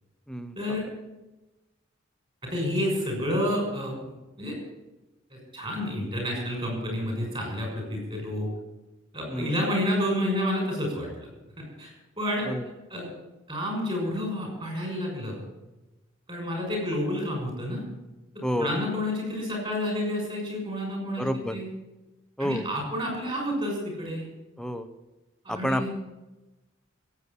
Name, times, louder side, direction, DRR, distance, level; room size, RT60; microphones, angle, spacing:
voice 1, 2.4-4.6 5.3-8.5 9.1-11.3 11.6-11.9 12.2-12.5 12.9-13.1 13.5-15.4 16.3-17.8 18.6-21.3 21.5-21.7 22.4-24.2 25.4-25.9, left 1 dB, 25° right, 0 dB, 6.3 m, -29 dB
voice 2, 18.4-18.7 21.2-21.6 22.4-22.7 24.6-24.9 25.5-25.9, equal, 5° left, 9 dB, 0.8 m, -29 dB
16.0 x 8.3 x 8.2 m, 1.1 s
head